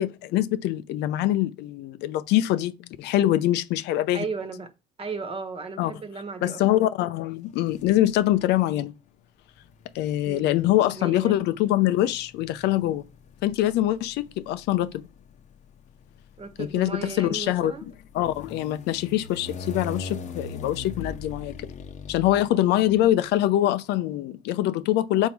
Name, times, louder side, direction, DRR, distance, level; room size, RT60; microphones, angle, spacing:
voice 1, 0.0-4.2 5.8-5.9 6.4-8.9 9.9-13.0 13.4-14.9 16.6-17.7 18.1-21.7 22.1-25.3, left 14 dB, 85° left, 0.6 m, -24 dB
voice 2, 4.1-4.7 5.0-6.8 10.2-10.5 10.9-11.3 16.4-17.9 22.5-22.8, right 4 dB, 35° right, 1.2 m, -35 dB
sound 1, 7.7-8.4 9.5-23.2, left 3 dB, 45° left, 0.8 m, -41 dB
5.4 x 4.5 x 4.7 m
cardioid pair, 110°, 17 cm